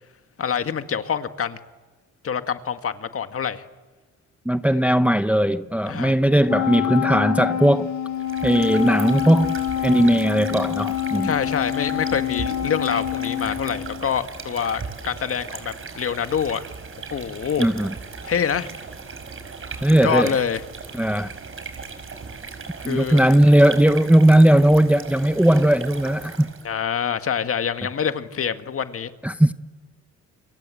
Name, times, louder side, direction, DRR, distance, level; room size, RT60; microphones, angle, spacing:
voice 1, 0.4-1.6 2.2-3.6 5.9-6.1 11.2-16.6 17.1-17.7 18.2-18.7 20.0-20.6 22.8-23.2 26.6-29.1, left 7 dB, 50° left, 1.9 m, -26 dB
voice 2, 4.4-7.9 8.4-9.5 9.8-11.3 17.6-17.9 19.8-20.4 20.9-21.3 22.8-26.5 29.2-29.5, right 1 dB, 5° right, 0.8 m, -18 dB
Wind instrument woodwind instrument, 6.5-14.1, left 11 dB, 75° left, 1.6 m, -26 dB
sound 1, 8.1-26.7, right 5 dB, 45° right, 5.1 m, -37 dB
29.5 x 24.5 x 7.8 m
cardioid pair, 90°, 30 cm